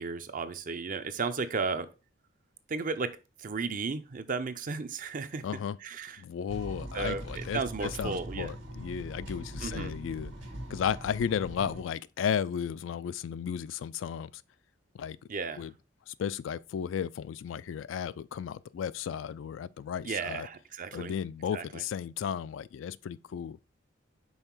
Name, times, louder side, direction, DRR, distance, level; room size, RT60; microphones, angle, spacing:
voice 1, 0.0-1.9 2.7-5.4 5.8-6.2 6.9-8.5 9.6-9.9 15.3-15.6 20.1-21.1 21.5-21.8, right 4 dB, 45° right, 0.5 m, -34 dB
voice 2, 5.4-5.8 6.2-10.3 10.7-14.4 14.9-15.2 15.6-15.7 16.1-20.5 20.9-23.6, left 8 dB, 75° left, 0.3 m, -34 dB
sound 1, 6.5-11.8, right 1 dB, 70° right, 1.7 m, -41 dB
5.6 x 4.0 x 4.4 m
head